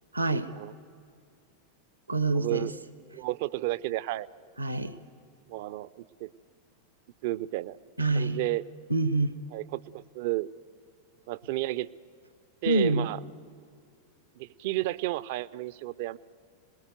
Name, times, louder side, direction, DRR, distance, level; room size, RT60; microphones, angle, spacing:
voice 1, 0.1-0.5 2.1-2.7 4.6-5.0 8.0-8.4 8.9-9.4 12.6-13.1, right 2 dB, 85° right, 15 dB, 1.0 m, -26 dB
voice 2, 2.3-2.7 3.1-4.3 5.5-6.3 7.2-7.8 8.2-8.6 9.5-10.5 11.3-11.9 12.6-13.2 14.4-16.2, right 18 dB, 50° right, 18 dB, 0.5 m, -32 dB
26.0 x 20.0 x 9.2 m, 2.4 s
figure-of-eight pair, 90°, 0 cm